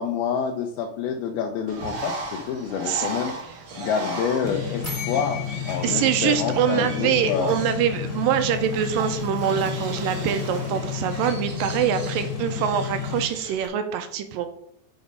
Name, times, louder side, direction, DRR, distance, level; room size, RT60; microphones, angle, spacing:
voice 1, 0.0-3.3 3.8-7.5, left 7 dB, 85° left, 2 dB, 2.5 m, -27 dB
Bird, 1.7-13.7, right 2 dB, 65° right, 1.0 m, -37 dB
sound 1, 4.4-13.2, left 8 dB, 60° left, 2.0 m, -31 dB
sound 2, 4.8-7.6, left 5 dB, 20° left, 1.3 m, -38 dB
voice 2, 5.8-14.5, right 9 dB, 85° right, 8 dB, 2.1 m, -24 dB
6.2 x 4.9 x 5.4 m, 0.70 s
omnidirectional pair, 4.4 m